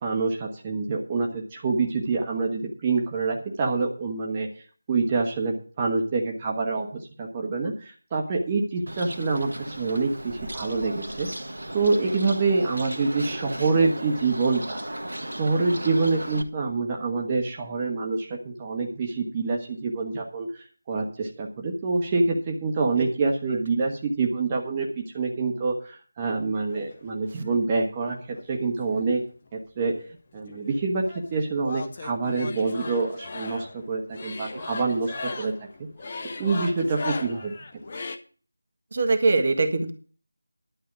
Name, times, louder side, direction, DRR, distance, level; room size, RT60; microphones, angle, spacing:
voice 1, 0.0-4.5 4.9-9.5 9.8-11.3 11.7-14.8 15.4-29.2 29.5-29.9 30.3-31.0 31.3-35.5 36.4-37.5, right 3 dB, 20° right, 0 dB, 1.3 m, -26 dB
Bird, 8.9-16.4, right 1 dB, 70° right, 1.6 m, -35 dB
sound 1, 26.7-27.5 28.4-29.5 29.8-38.2, left 3 dB, 35° left, 1.1 m, -38 dB
voice 2, 38.9-39.9, right 3 dB, 40° right, 8 dB, 1.6 m, -22 dB
11.5 x 5.6 x 8.0 m, 0.39 s
figure-of-eight pair, 165°, 0 cm